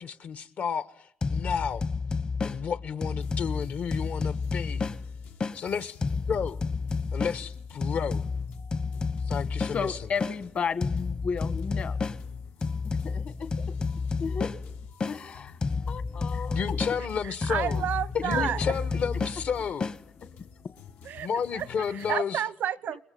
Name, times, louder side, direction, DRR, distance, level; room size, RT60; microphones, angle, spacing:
voice 1, 0.0-1.8 2.4-4.9 5.5-6.0 6.3-6.6 7.1-8.2 9.3-10.0 16.5-17.8 18.2-19.9 21.2-22.4, left 6 dB, 70° left, 1.4 m, -32 dB
sound 1, 1.2-5.6 6.0-10.4 10.8-15.2 15.6-20.0, left 4 dB, 35° left, 0.9 m, -31 dB
sound 2, 3.2-22.2, left 7 dB, 85° left, 1.6 m, -51 dB
voice 2, 9.7-12.0 12.8-13.7 14.2-14.5 15.0-15.6 15.9-16.8 18.1-18.7, left 6 dB, 50° left, 1.6 m, -33 dB
voice 3, 17.2-18.6 21.0-23.0, right 10 dB, 85° right, 0.9 m, -31 dB
28.5 x 21.5 x 7.1 m
wide cardioid pair, 150°, 3 cm